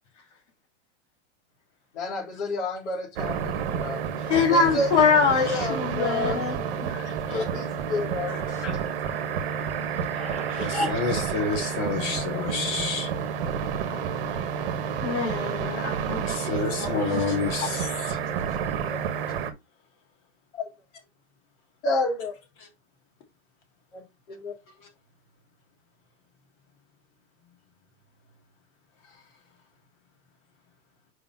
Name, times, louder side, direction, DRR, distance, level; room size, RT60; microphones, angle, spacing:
voice 1, 1.9-4.0 4.5-5.0 5.3-6.4 6.8-8.7 9.0-9.2 10.1-11.2 18.9-19.0 21.8-22.3 23.9-24.0 24.3-24.5, left 2 dB, 70° left, 2.6 m, -31 dB
sound 1, 3.2-19.5, right 7 dB, 55° right, 1.2 m, -30 dB
voice 2, 4.3-6.9 11.9-12.9 13.8-14.0 14.2-14.4 15.0-16.5 16.8-17.2, left 5 dB, 85° left, 2.4 m, -25 dB
voice 3, 8.3-8.6 10.5-13.1 16.2-17.9, left 4 dB, 30° left, 1.7 m, -29 dB
5.0 x 3.9 x 5.6 m
supercardioid pair, 175°, 35 cm